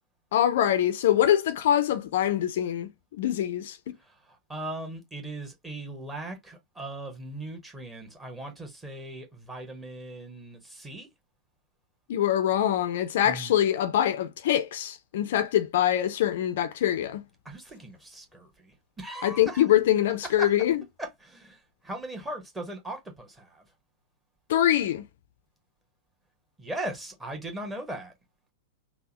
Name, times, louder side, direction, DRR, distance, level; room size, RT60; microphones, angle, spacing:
voice 1, 0.3-3.8 12.1-17.2 19.2-20.8 24.5-25.0, left 11 dB, 55° left, 0.4 m, -24 dB
voice 2, 4.0-11.1 13.2-13.6 17.4-19.6 20.2-20.5 21.0-23.7 26.6-28.1, right 1 dB, 10° right, 1.1 m, -39 dB
3.5 x 2.1 x 2.8 m
figure-of-eight pair, 95°, 0 cm